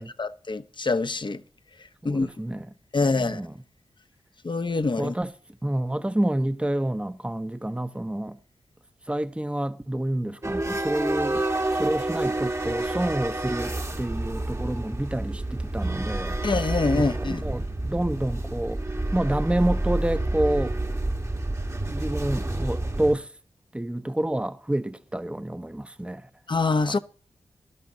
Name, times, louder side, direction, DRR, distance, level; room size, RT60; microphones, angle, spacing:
voice 1, 0.2-1.4 2.0-2.3 2.9-3.4 4.4-5.1 16.4-17.4 26.5-27.0, left 3 dB, 45° left, 0.9 m, -25 dB
voice 2, 2.0-2.7 3.1-3.6 5.0-5.3 5.6-8.4 9.1-11.5 11.8-16.4 16.9-18.8 19.1-20.8 21.9-23.3 23.7-26.3 26.8-27.0, right 1 dB, 10° right, 0.9 m, -28 dB
sound 1, 10.4-23.2, right 2 dB, 25° right, 1.3 m, -29 dB
19.0 x 12.0 x 2.8 m
cardioid pair, 45°, 11 cm